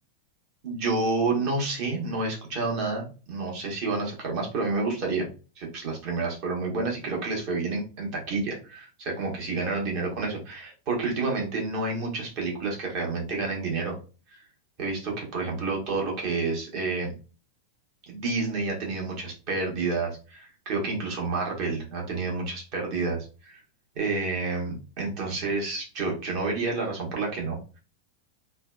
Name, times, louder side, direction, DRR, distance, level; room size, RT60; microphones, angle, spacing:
voice 1, 0.6-5.3 5.6-14.0 14.3-14.4 14.8-17.1 18.1-23.6 23.9-27.8, right 3 dB, 45° right, 0 dB, 1.0 m, -29 dB
3.2 x 2.1 x 2.2 m, 0.34 s
figure-of-eight pair, 90°, 0 cm